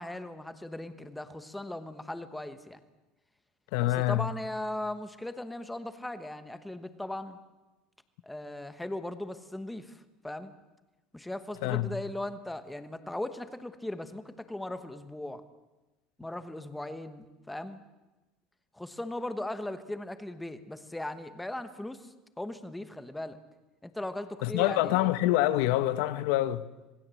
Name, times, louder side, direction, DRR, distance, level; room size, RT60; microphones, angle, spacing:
voice 1, 0.0-2.8 3.8-7.4 8.2-10.5 11.1-15.4 16.2-17.8 18.7-23.4 23.8-25.1, left 1 dB, 5° left, 1.1 m, -38 dB
voice 2, 3.7-4.3 11.6-12.0 24.4-26.6, left 15 dB, 70° left, 1.1 m, -26 dB
26.5 x 20.5 x 7.7 m
cardioid pair, 175°, 0 cm